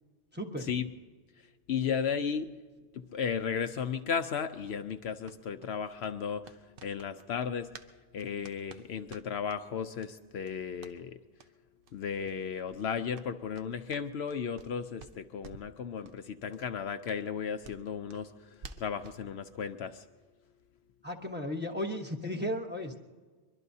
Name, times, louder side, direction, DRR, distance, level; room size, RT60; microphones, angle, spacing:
voice 1, 0.3-0.7 21.0-23.0, left 1 dB, 10° right, 1 dB, 1.1 m, -35 dB
voice 2, 1.7-2.5 2.9-6.4 6.8-7.7 8.1-11.2 11.9-18.3 18.8-20.0, left 7 dB, 70° left, 8 dB, 0.9 m, -34 dB
sound 1, 5.2-7.9 8.2-9.6 10.0-10.1 10.4-11.0 11.3-11.5 11.8-11.9 12.2-12.4 12.7-14.7 15.0-15.7 16.0-16.2 16.5-16.6 17.0-19.2, right 5 dB, 55° right, 0.9 m, -52 dB
23.0 x 22.5 x 2.7 m, 1.4 s
omnidirectional pair, 1.2 m